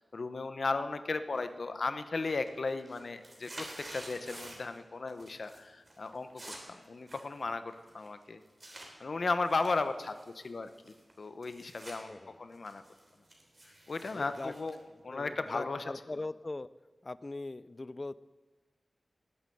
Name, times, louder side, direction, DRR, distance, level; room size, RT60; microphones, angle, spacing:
voice 1, 0.1-8.4 9.0-12.8 13.9-14.8 15.0-15.8, left 3 dB, 60° left, 10 dB, 0.8 m, -35 dB
sound 1, 1.3-1.8 2.1-4.8 5.1-5.6 5.9-8.9 9.4-12.0 12.3-15.5, right 1 dB, 30° right, 3.4 m, -50 dB
voice 2, 12.0-12.4 14.0-14.5 15.1-16.7 17.0-18.1, left 2 dB, 35° left, 17 dB, 0.4 m, -40 dB
19.0 x 8.7 x 7.8 m, 1.3 s
wide cardioid pair, 105°, 0 cm